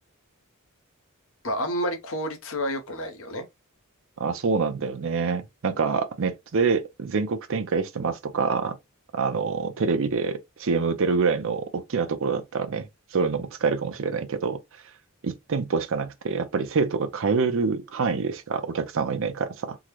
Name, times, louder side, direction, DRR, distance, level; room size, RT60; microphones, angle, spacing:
voice 1, 1.4-3.4, equal, 65° left, 0.9 m, -29 dB
voice 2, 4.2-8.8 9.1-14.6 15.2-19.8, right 5 dB, 65° right, 0.6 m, -26 dB
3.6 x 2.1 x 3.0 m
head